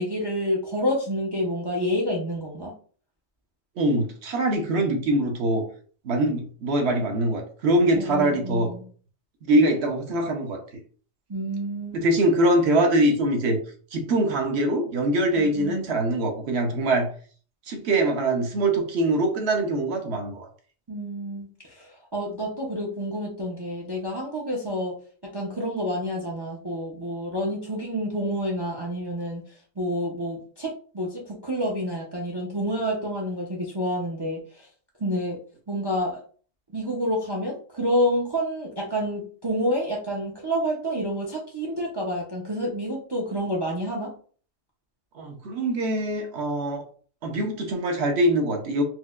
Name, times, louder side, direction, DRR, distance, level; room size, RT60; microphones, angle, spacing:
voice 1, 0.0-2.7 7.9-8.8 11.3-12.0 15.3-15.9 20.9-25.0 25.3-29.4 29.8-34.7 35.0-35.4 35.7-36.2 36.7-44.1, equal, 35° right, -1 dB, 0.4 m, -28 dB
voice 2, 3.8-5.6 6.0-8.7 9.5-10.6 11.9-13.6 13.9-17.1 17.7-20.5 45.1-46.8 47.2-48.8, right 1 dB, 60° right, 4 dB, 0.9 m, -23 dB
4.4 x 2.1 x 2.4 m, 0.43 s
omnidirectional pair, 1.4 m